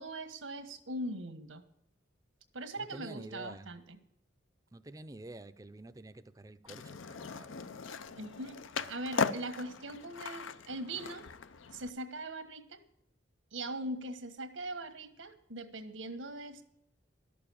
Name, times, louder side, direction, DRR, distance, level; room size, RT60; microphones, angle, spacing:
voice 1, 0.0-1.6 2.5-3.8 8.2-11.3 11.7-12.8 13.5-16.6, right 1 dB, 85° right, 8 dB, 1.4 m, -41 dB
voice 2, 2.8-3.7 4.7-7.7, right 2 dB, 20° right, 12 dB, 0.5 m, -49 dB
Skateboard, 6.7-11.9, left 5 dB, 85° left, 0.6 m, -38 dB
12.5 x 6.9 x 8.6 m, 0.78 s
head